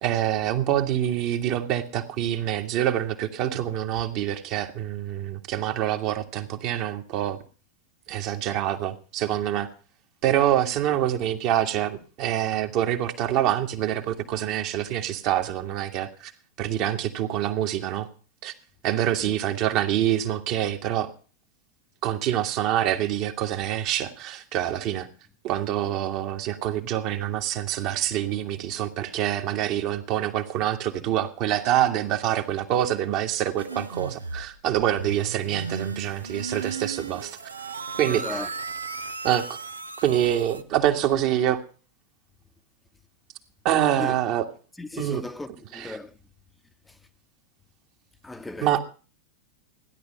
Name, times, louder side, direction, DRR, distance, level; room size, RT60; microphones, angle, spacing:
voice 1, 0.0-7.4 8.1-9.7 10.2-16.3 16.6-18.1 18.4-18.5 18.8-21.1 22.0-25.1 25.4-37.4 38.0-38.4 39.2-39.6 40.0-41.6 43.6-44.4 45.0-45.2 45.7-45.9 48.6-48.8, right 11 dB, 40° right, 1.9 m, -26 dB
sound 1, 33.6-40.6, right 4 dB, 75° right, 0.9 m, -35 dB
voice 2, 38.1-38.5 44.0-44.2 44.8-46.2 46.8-47.0 48.2-48.8, left 2 dB, 5° left, 1.1 m, -36 dB
16.0 x 11.0 x 5.6 m
figure-of-eight pair, 90°, 0 cm